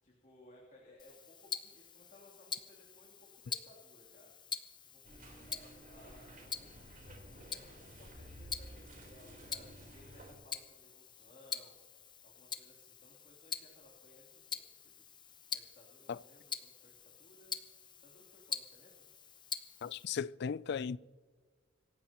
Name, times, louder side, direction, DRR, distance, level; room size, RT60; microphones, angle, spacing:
voice 1, 0.0-4.3 4.8-11.8 12.2-15.0 15.5-17.6 18.0-19.1, left 1 dB, 40° left, 3.1 m, -61 dB
Tick-tock, 1.0-20.1, left 6 dB, 25° left, 0.8 m, -46 dB
sound 1, 5.0-10.3, right 1 dB, 45° right, 3.9 m, -53 dB
voice 2, 19.8-21.0, left 6 dB, 60° left, 0.4 m, -36 dB
26.5 x 14.5 x 3.0 m
head